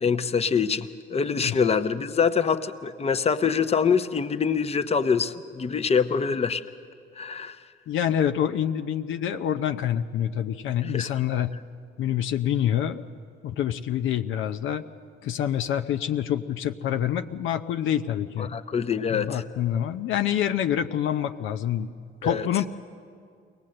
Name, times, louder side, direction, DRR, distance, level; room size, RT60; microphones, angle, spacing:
voice 1, 0.0-6.6 7.2-7.6 10.8-11.2 18.4-19.4 22.2-22.5, left 6 dB, 30° left, 10 dB, 0.8 m, -25 dB
voice 2, 7.9-11.5 12.0-13.0 13.4-14.8 15.2-18.5 19.1-21.9 22.2-22.7, left 10 dB, 80° left, 7 dB, 0.6 m, -26 dB
22.5 x 18.5 x 7.7 m, 2.3 s
cardioid pair, 90°, 20 cm